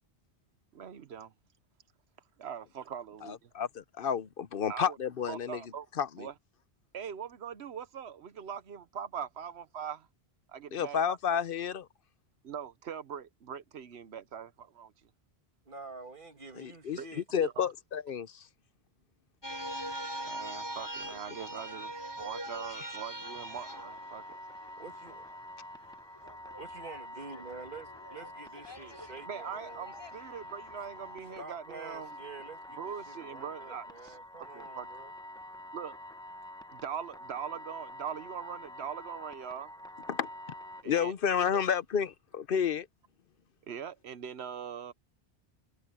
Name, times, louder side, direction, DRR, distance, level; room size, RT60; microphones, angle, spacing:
voice 1, 0.7-1.3 2.4-3.5 4.7-5.0 5.3-5.9 6.2-6.3 6.9-10.1 10.5-11.2 12.4-15.1 16.9-17.1 17.4-17.7 19.9-24.4 29.3-32.2 32.8-34.9 35.7-36.0 36.7-39.8 40.8-41.1 41.5-41.7 43.7-44.9, right 8 dB, 85° right, 1.1 m, -42 dB
voice 2, 3.2-5.6 6.0-6.3 10.7-11.9 16.5-17.0 17.3-18.5 22.8-22.9 40.1-40.3 40.8-42.9, left 8 dB, 60° left, 0.8 m, -31 dB
voice 3, 15.7-17.2 24.8-25.2 26.6-29.9 31.4-35.1, right 3 dB, 55° right, 2.0 m, -47 dB
sound 1, 19.4-25.4 25.8-31.5, right 1 dB, 25° left, 3.4 m, -43 dB
sound 2, 23.2-40.8, left 1 dB, 5° left, 0.9 m, -47 dB
omnidirectional pair, 1.1 m